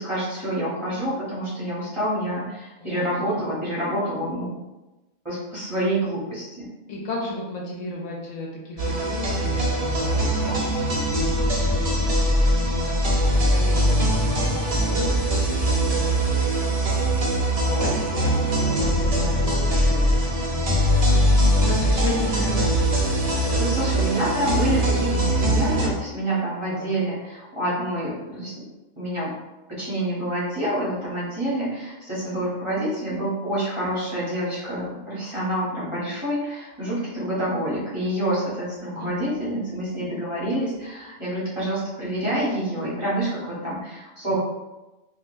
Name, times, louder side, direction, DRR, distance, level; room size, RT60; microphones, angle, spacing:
voice 1, 0.0-4.5 5.2-6.7 23.6-28.5 29.0-29.3 29.7-44.4, right 1 dB, 25° right, -9 dB, 1.0 m, -27 dB
voice 2, 2.8-3.7 6.9-16.9 17.6-24.3 26.7-26.9 39.0-39.2 44.3-44.4, left 2 dB, 75° left, -2 dB, 0.9 m, -35 dB
sound 1, 8.8-25.9, equal, 45° right, 0.4 m, -21 dB
3.8 x 2.4 x 2.5 m, 1.1 s
omnidirectional pair, 1.3 m